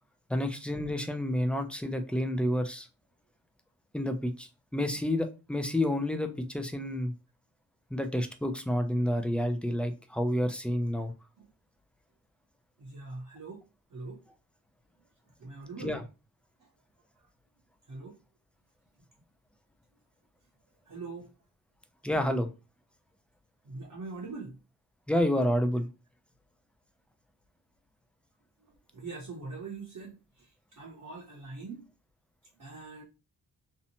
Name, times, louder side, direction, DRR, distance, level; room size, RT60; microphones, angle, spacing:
voice 1, 0.3-2.9 3.9-7.1 7.9-11.1 15.8-16.0 22.0-22.5 25.1-25.9, left 1 dB, 5° left, 6 dB, 0.3 m, -29 dB
voice 2, 11.0-11.5 12.8-13.6 13.9-14.2 15.3-16.0 16.6-16.7 17.2-17.3 17.9-18.2 20.9-21.3 23.6-24.6 28.6-31.9 32.6-33.0, right 3 dB, 50° right, -3 dB, 0.8 m, -43 dB
2.7 x 2.1 x 2.8 m, 0.29 s
cardioid pair, 65°, 41 cm